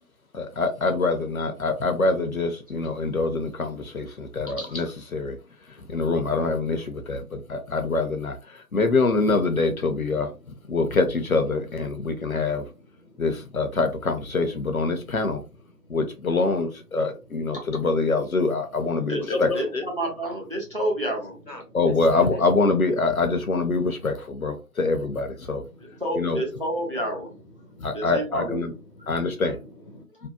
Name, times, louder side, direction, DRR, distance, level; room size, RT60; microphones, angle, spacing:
voice 1, 0.3-5.4 5.8-10.3 10.7-12.7 13.2-15.4 15.9-19.8 21.7-25.6 26.2-26.4 27.8-28.7 29.1-29.6 30.2-30.3, left 3 dB, 60° left, 0.6 m, -25 dB
voice 2, 10.1-10.9 11.9-13.4 15.7-16.5 16.9-18.3 18.9-19.2 21.5-22.5 25.6-26.0 26.8-30.1, left 1 dB, 85° left, 1.0 m, -49 dB
voice 3, 19.1-21.4 25.8-27.3 27.9-28.6 29.0-29.5, right 1 dB, 35° right, 0.6 m, -29 dB
2.7 x 2.1 x 2.2 m
figure-of-eight pair, 155°, 48 cm